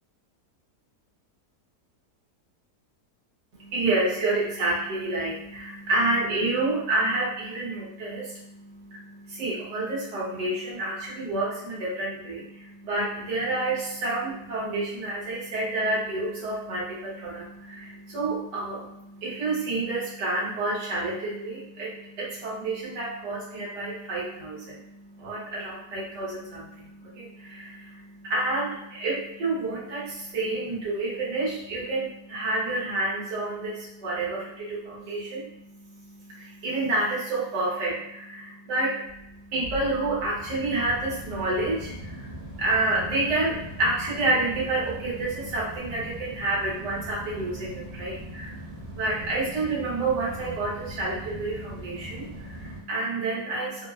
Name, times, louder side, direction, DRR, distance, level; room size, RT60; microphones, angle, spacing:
voice 1, 3.5-53.9, right 2 dB, 90° right, -6 dB, 1.7 m, -29 dB
sound 1, 39.1-52.8, right 1 dB, 70° right, 1.8 m, -40 dB
4.4 x 2.0 x 2.4 m, 0.83 s
omnidirectional pair, 1.8 m